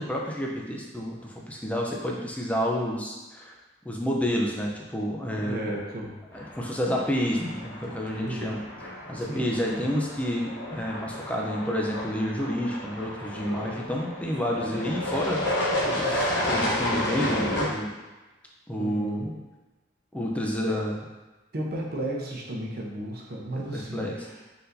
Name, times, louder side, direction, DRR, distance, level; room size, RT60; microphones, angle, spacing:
voice 1, 0.0-3.5 3.9-5.7 6.3-8.6 9.1-17.9 18.7-19.4 20.1-21.0 23.5-24.1, equal, 5° left, -2 dB, 0.5 m, -29 dB
voice 2, 5.3-6.2 8.2-8.7 9.1-9.8 18.8-19.4 21.5-24.4, right 1 dB, 50° right, -1 dB, 0.8 m, -34 dB
sound 1, 6.3-17.6, left 1 dB, 65° left, 0.9 m, -31 dB
4.5 x 4.0 x 2.6 m, 1.2 s
head